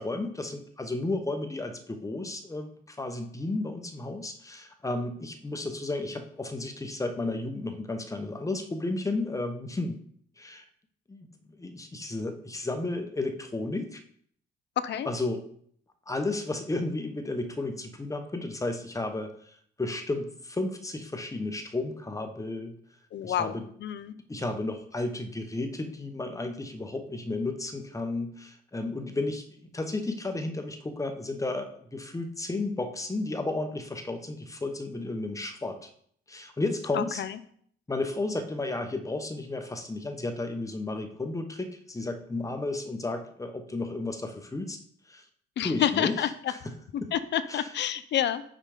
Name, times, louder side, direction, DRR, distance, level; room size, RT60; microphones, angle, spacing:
voice 1, 0.0-10.0 10.4-10.6 11.1-11.3 11.6-14.0 15.1-15.4 16.1-22.7 23.2-23.7 24.3-29.5 29.7-35.9 36.3-37.2 37.9-44.8 45.1-45.2 45.6-46.2 47.0-47.1 47.5-47.6, left 2 dB, 15° left, 6 dB, 1.0 m, -33 dB
voice 2, 23.1-24.2 36.9-37.4 45.6-46.5 46.9-48.4, left 10 dB, 60° left, 14 dB, 0.6 m, -29 dB
5.7 x 4.9 x 5.0 m, 0.63 s
cardioid pair, 90°, 20 cm